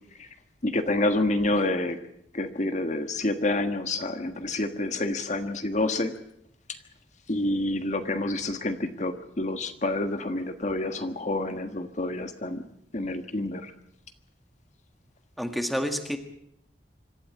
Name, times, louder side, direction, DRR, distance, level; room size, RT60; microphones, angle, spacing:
voice 1, 0.6-2.0 2.3-6.1 7.3-12.6 12.9-13.7, left 2 dB, 40° left, 8 dB, 1.5 m, -28 dB
voice 2, 15.4-16.2, equal, ahead, 6 dB, 1.7 m, -29 dB
25.5 x 13.0 x 8.7 m, 0.74 s
head